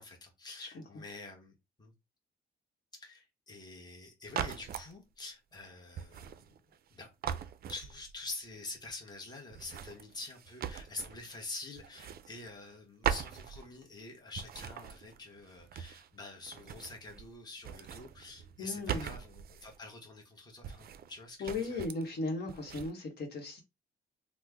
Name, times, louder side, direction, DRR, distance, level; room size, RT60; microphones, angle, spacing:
voice 1, 0.0-1.9 3.0-6.6 6.9-7.1 7.7-21.8, left 3 dB, 20° left, 1.1 m, -46 dB
sound 1, 4.3-4.9 6.0-6.9 7.2-8.3 9.5-11.4 11.8-12.8 13.0-14.0 14.3-16.2 16.4-17.3 17.6-19.8 20.6-21.2 21.4-22.1 22.5-22.9, right 9 dB, 50° right, 0.4 m, -40 dB
voice 2, 18.6-19.1 21.4-23.6, left 3 dB, 55° left, 1.1 m, -37 dB
3.2 x 2.1 x 3.4 m
cardioid pair, 90°, 20 cm